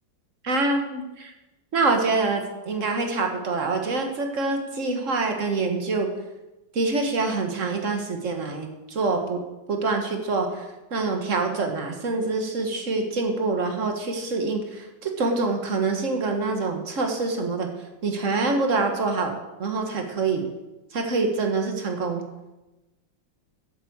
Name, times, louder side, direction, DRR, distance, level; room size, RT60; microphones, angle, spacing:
voice 1, 0.4-1.3 1.7-6.1 6.7-9.4 9.7-17.7 18.0-19.3 19.6-20.5 20.9-22.2, right 3 dB, 45° right, 4 dB, 1.7 m, -25 dB
8.2 x 7.9 x 7.8 m, 1.0 s
omnidirectional pair, 2.1 m